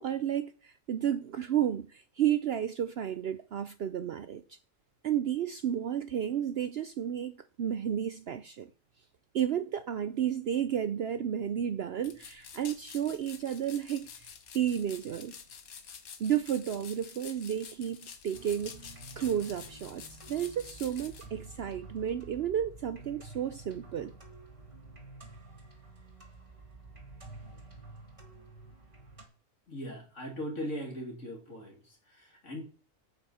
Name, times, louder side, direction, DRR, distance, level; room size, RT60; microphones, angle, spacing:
voice 1, 0.0-4.6 5.0-8.7 9.3-15.4 16.2-18.7 19.2-24.1, right 9 dB, 60° right, 0.7 m, -32 dB
sound 1, 12.0-21.3, left 7 dB, 85° left, 1.6 m, -49 dB
sound 2, 18.3-29.2, right 3 dB, 25° right, 2.5 m, -50 dB
voice 2, 29.7-32.6, equal, 60° left, 3.3 m, -39 dB
8.5 x 8.2 x 5.5 m
omnidirectional pair, 1.5 m